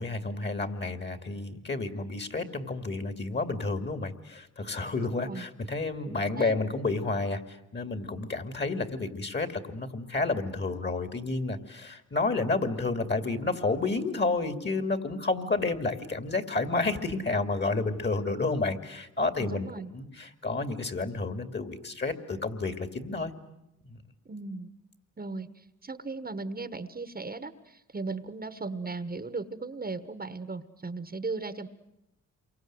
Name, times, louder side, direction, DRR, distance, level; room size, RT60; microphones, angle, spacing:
voice 1, 0.0-23.3 23.8-24.0, left 3 dB, 35° left, 8 dB, 2.8 m, -30 dB
voice 2, 5.0-5.4 6.1-6.5 19.3-19.9 24.2-24.7 25.2-31.7, right 3 dB, 30° right, 12 dB, 1.4 m, -37 dB
28.0 x 24.0 x 7.9 m, 0.89 s
cardioid pair, 65°, 31 cm